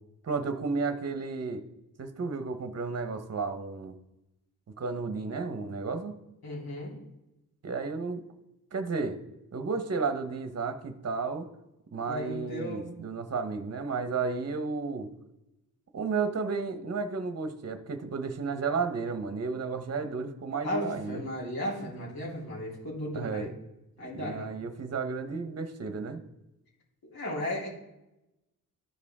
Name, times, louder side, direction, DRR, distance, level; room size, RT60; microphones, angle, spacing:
voice 1, 0.2-1.6 2.0-3.9 4.8-6.1 7.6-8.2 8.7-9.2 9.5-11.5 11.9-15.1 15.9-21.2 23.1-23.5 24.1-26.2, right 4 dB, 45° right, 9 dB, 0.9 m, -32 dB
voice 2, 6.4-6.9 12.1-12.9 20.6-23.5 24.0-24.5 27.0-27.7, left 1 dB, 80° left, -6 dB, 3.3 m, -35 dB
13.0 x 5.0 x 3.6 m, 0.92 s
wide cardioid pair, 115°, 36 cm